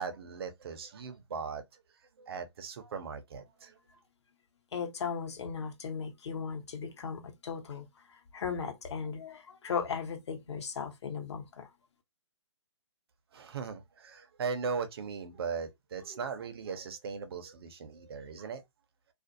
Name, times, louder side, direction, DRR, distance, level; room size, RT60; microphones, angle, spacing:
voice 1, 0.0-1.8 2.2-3.8 13.3-18.6, right 5 dB, 50° right, 0.6 m, -38 dB
voice 2, 4.7-7.9 8.3-11.7, left 6 dB, 60° left, 0.9 m, -37 dB
2.5 x 2.1 x 2.6 m
hypercardioid pair, 145°, 16 cm